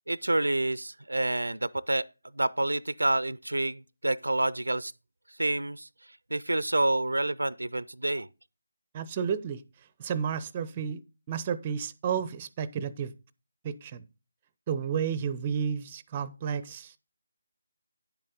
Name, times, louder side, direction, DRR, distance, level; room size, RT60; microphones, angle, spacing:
voice 1, 0.1-2.1 2.3-4.9 5.4-5.9 6.3-8.3, right 2 dB, 75° right, 0.4 m, -28 dB
voice 2, 8.9-9.6 10.0-11.0 11.3-13.1 13.6-14.0 14.7-17.0, right 7 dB, 25° right, 0.5 m, -31 dB
10.5 x 7.5 x 3.8 m
figure-of-eight pair, 155°, 0 cm